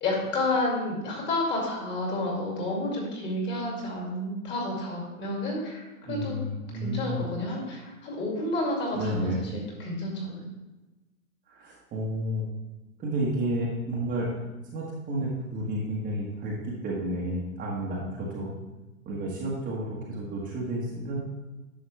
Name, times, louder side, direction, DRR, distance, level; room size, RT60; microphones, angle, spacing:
voice 1, 0.0-6.3 6.7-10.4, left 2 dB, 25° left, -1 dB, 2.4 m, -30 dB
voice 2, 6.1-7.2 8.9-9.4 11.5-12.4 13.0-14.3 14.7-16.6 16.8-18.5 19.0-21.2, right 1 dB, 20° right, -5 dB, 1.3 m, -31 dB
10.0 x 6.2 x 3.3 m, 1.1 s
hypercardioid pair, 125°, 45 cm